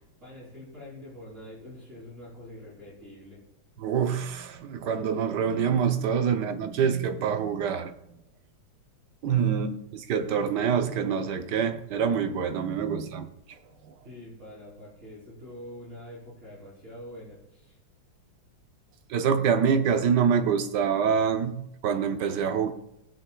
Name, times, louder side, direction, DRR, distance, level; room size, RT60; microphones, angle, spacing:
voice 1, 0.2-3.4 6.2-6.3 9.3-9.6 14.0-17.8, left 1 dB, 35° right, 4.2 m, -45 dB
voice 2, 3.8-7.9 9.2-13.6 13.8-13.9 19.1-21.6 21.8-22.7, right 7 dB, 65° right, 1.3 m, -26 dB
18.0 x 9.0 x 2.3 m
omnidirectional pair, 2.2 m